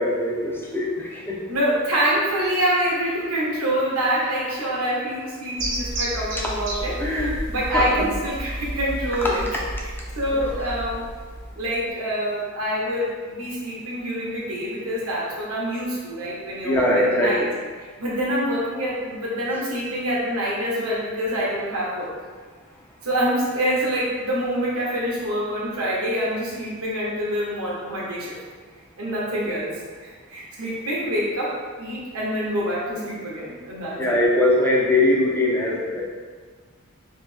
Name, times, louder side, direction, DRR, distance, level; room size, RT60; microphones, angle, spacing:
voice 1, 0.0-1.4 7.0-8.1 10.3-10.4 16.6-17.5 19.5-19.6 30.6-30.7 34.0-36.0, left 1 dB, 10° left, -3 dB, 0.4 m, -22 dB
voice 2, 1.5-7.2 7.5-9.4 10.2-11.0 11.6-17.4 18.0-22.1 23.0-28.4 29.0-29.8 30.3-34.2, equal, 90° right, -5 dB, 1.2 m, -26 dB
sound 1, 5.6-11.9, right 1 dB, 60° right, 0.8 m, -31 dB
3.3 x 3.0 x 3.3 m, 1.5 s
head